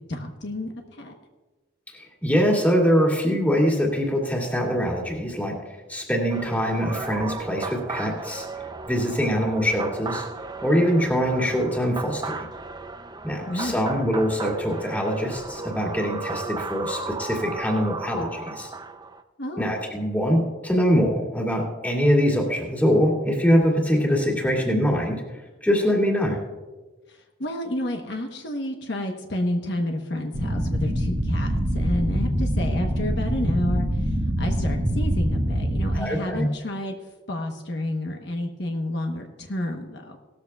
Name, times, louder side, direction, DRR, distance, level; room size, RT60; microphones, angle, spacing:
voice 1, 0.1-0.7 1.0-1.1 13.5-13.8 19.4-19.6 27.4-33.9 34.4-37.0 37.3-40.2, left 1 dB, 60° left, 2 dB, 1.1 m, -30 dB
voice 2, 1.9-5.6 5.9-8.5 8.9-10.2 10.6-12.5 13.2-18.7 19.6-25.2 25.6-26.4 35.9-36.5, equal, 10° left, -2 dB, 2.4 m, -23 dB
sound 1, 6.3-19.2, right 3 dB, 20° right, 0.5 m, -35 dB
sound 2, 30.3-36.0, equal, 55° right, 1.5 m, -24 dB
18.0 x 13.5 x 2.4 m, 1.2 s
head